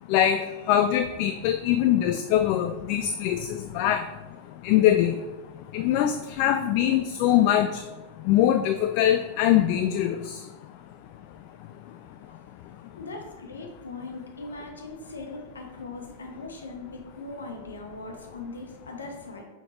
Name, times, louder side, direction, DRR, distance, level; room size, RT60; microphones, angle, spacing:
voice 1, 0.1-4.0 4.6-5.2 5.7-7.8 8.3-10.4, left 11 dB, 45° left, 8 dB, 0.3 m, -22 dB
voice 2, 13.0-19.4, left 3 dB, 70° left, 3 dB, 1.1 m, -40 dB
6.0 x 5.1 x 3.1 m, 1.1 s
figure-of-eight pair, 90°, 0 cm